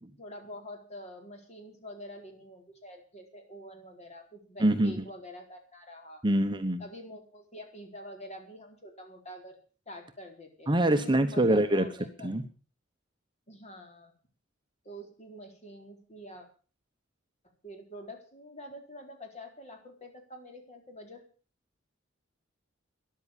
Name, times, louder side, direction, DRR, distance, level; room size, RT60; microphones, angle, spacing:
voice 1, 0.2-6.2 6.8-9.6 9.9-12.3 13.5-14.1 14.8-16.5 17.6-21.2, equal, 35° left, 3 dB, 4.3 m, -46 dB
voice 2, 4.6-5.0 6.2-6.8 10.7-11.9 12.2-12.4, right 1 dB, 25° right, 8 dB, 1.0 m, -25 dB
13.5 x 11.0 x 7.2 m, 0.39 s
head